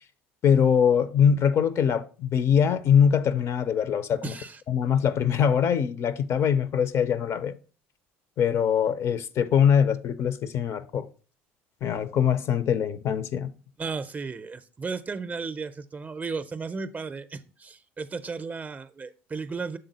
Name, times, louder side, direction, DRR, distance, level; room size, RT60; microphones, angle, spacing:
voice 1, 0.4-4.3 4.7-7.5 8.4-11.1 11.8-13.5, left 8 dB, 50° left, 0.4 m, -23 dB
voice 2, 4.2-4.6 13.8-19.8, right 4 dB, 25° right, 0.5 m, -34 dB
6.7 x 3.7 x 4.0 m
hypercardioid pair, 65°, 6 cm